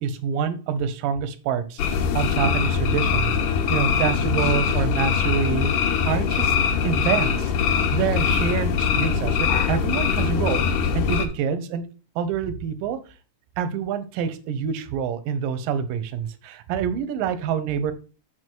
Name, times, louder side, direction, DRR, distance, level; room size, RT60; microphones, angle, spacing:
voice 1, 0.0-6.6 6.8-7.5 7.9-11.8 12.2-13.0 13.6-17.9, right 7 dB, 90° right, 12 dB, 2.5 m, -27 dB
sound 1, 1.8-11.3, left 6 dB, 80° left, 2.5 m, -22 dB
6.5 x 6.2 x 4.5 m, 0.35 s
omnidirectional pair, 3.8 m